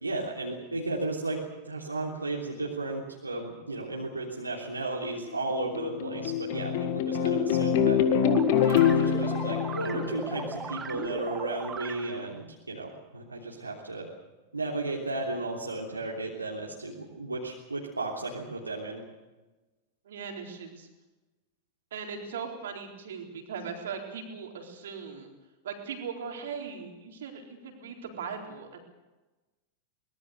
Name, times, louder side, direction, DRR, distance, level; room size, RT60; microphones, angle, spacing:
voice 1, 0.0-1.4 1.6-8.0 8.6-14.1 14.5-19.0, right 2 dB, 80° right, -2 dB, 3.2 m, -34 dB
sound 1, 5.3-10.9, left 8 dB, 50° left, 1.9 m, -26 dB
sound 2, 7.9-12.3, right 6 dB, 20° right, 1.6 m, -38 dB
voice 2, 20.0-20.9 21.9-25.3 25.6-28.8, right 6 dB, 60° right, 2 dB, 4.1 m, -39 dB
23.5 x 20.5 x 6.8 m, 1.1 s
figure-of-eight pair, 90°, 0 cm